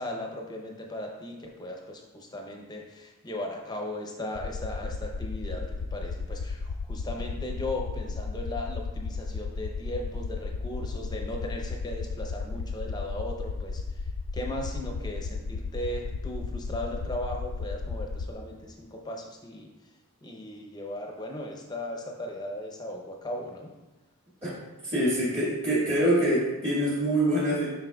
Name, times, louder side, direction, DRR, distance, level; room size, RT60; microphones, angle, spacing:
voice 1, 0.0-13.8 14.3-19.7 20.2-23.7, left 1 dB, 20° left, 1 dB, 0.7 m, -37 dB
sound 1, 4.3-18.3, left 4 dB, 70° left, 0.3 m, -34 dB
voice 2, 24.8-27.7, right 1 dB, 30° right, -8 dB, 1.7 m, -25 dB
7.2 x 5.6 x 2.3 m, 1.1 s
head